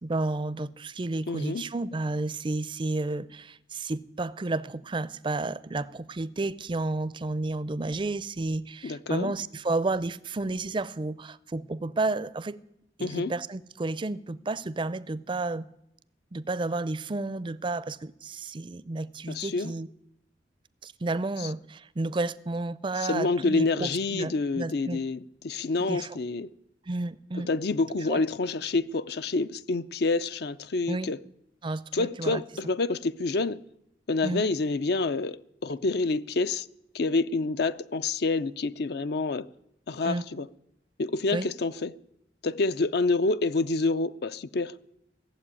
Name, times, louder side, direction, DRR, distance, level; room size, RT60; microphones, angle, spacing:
voice 1, 0.0-12.6 13.0-15.7 16.3-19.9 20.8-25.0 25.9-26.2 26.9-27.5 28.1-28.2 30.9-31.1 31.6-32.4 34.2-34.5 40.0-40.2 41.3-41.5, right 2 dB, 30° right, 0.5 m, -31 dB
voice 2, 1.3-1.6 8.8-9.3 13.0-13.3 19.3-19.7 23.0-26.5 27.5-31.2 31.9-33.6 34.1-36.7 36.9-39.5 39.9-40.5 41.0-41.9 42.4-44.7, left 3 dB, 60° left, 0.5 m, -28 dB
16.0 x 7.7 x 9.8 m
head